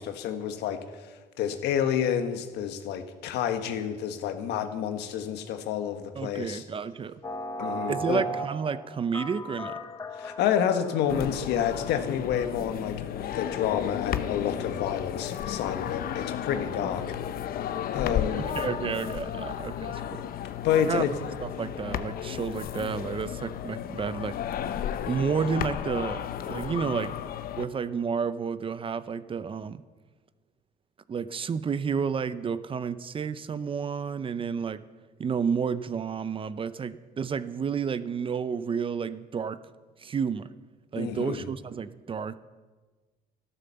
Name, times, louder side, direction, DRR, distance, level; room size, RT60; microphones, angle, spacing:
voice 1, 0.0-6.6 7.6-8.2 10.2-17.1 17.9-18.5 20.4-21.1 41.0-41.4, left 9 dB, 80° left, 8 dB, 1.4 m, -29 dB
voice 2, 6.2-7.2 7.9-9.8 16.7-16.9 18.5-20.2 20.9-21.0 21.4-24.4 25.1-27.1 27.6-29.8 31.1-34.8 35.2-39.6 40.0-40.5 40.9-42.4, right 6 dB, 30° right, 15 dB, 0.6 m, -31 dB
sound 1, 7.2-11.7, equal, 20° left, 0.9 m, -37 dB
sound 2, 11.1-27.7, left 10 dB, 60° left, 0.8 m, -33 dB
13.0 x 12.5 x 6.9 m, 1.3 s
cardioid pair, 110°, 17 cm